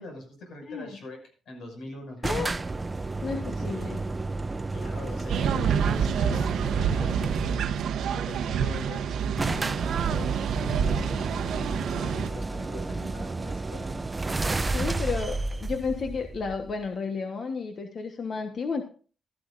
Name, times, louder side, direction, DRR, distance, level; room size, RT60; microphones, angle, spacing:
voice 1, 0.0-2.2 3.5-4.0 4.7-9.6 10.0-11.4 11.9-14.0, left 1 dB, 90° left, 3 dB, 6.1 m, -43 dB
sound 1, 2.2-7.7 8.7-8.8 9.0-9.1 9.4-16.9, right 3 dB, 15° right, 0.5 m, -32 dB
voice 2, 3.2-4.0 14.7-18.8, left 5 dB, 45° left, 6 dB, 1.2 m, -32 dB
sound 2, 5.3-12.3, right 7 dB, 75° right, 0.9 m, -27 dB
15.5 x 13.5 x 2.6 m, 0.38 s
wide cardioid pair, 160°, 0 cm